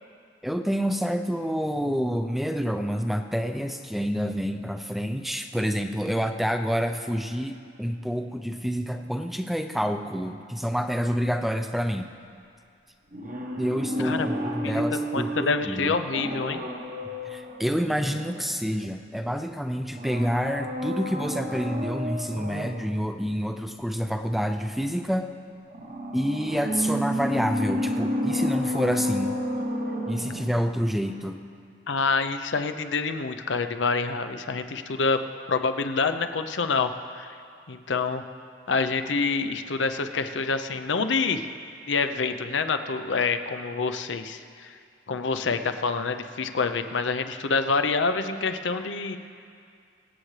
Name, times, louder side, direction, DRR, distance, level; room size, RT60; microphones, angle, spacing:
voice 1, 0.4-12.1 13.6-15.9 17.2-25.3 26.1-29.3 30.1-31.4, equal, ahead, 6 dB, 0.4 m, -28 dB
sound 1, 13.1-18.9 19.9-22.9 25.7-30.9 31.2-31.3, equal, 45° right, 1.0 m, -31 dB
voice 2, 14.6-16.6 31.9-35.2 35.5-37.3 37.7-38.2 38.7-41.5 41.9-44.7 45.1-49.2, left 4 dB, 85° left, 8 dB, 0.6 m, -27 dB
24.0 x 8.7 x 3.3 m, 2.3 s
head